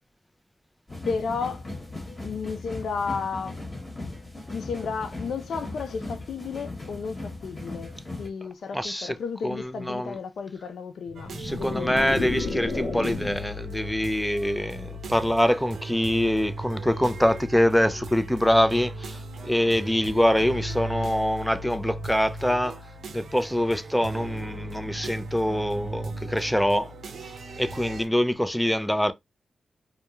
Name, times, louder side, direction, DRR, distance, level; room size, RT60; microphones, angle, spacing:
sound 1, 0.9-8.3, left 2 dB, 25° left, 1.2 m, -38 dB
voice 1, 1.1-1.6 2.2-3.6 4.5-7.9 8.2-12.1, left 5 dB, 75° left, 0.4 m, -33 dB
voice 2, 8.7-9.2 9.4-10.2 11.4-22.8 23.1-26.9 27.2-27.3 27.6-29.1, equal, 5° left, 0.5 m, -24 dB
sound 2, 11.1-13.6, left 3 dB, 55° left, 0.7 m, -32 dB
sound 3, 11.2-28.1, right 1 dB, 75° right, 0.6 m, -37 dB
2.2 x 2.1 x 3.0 m
cardioid pair, 55°, 0 cm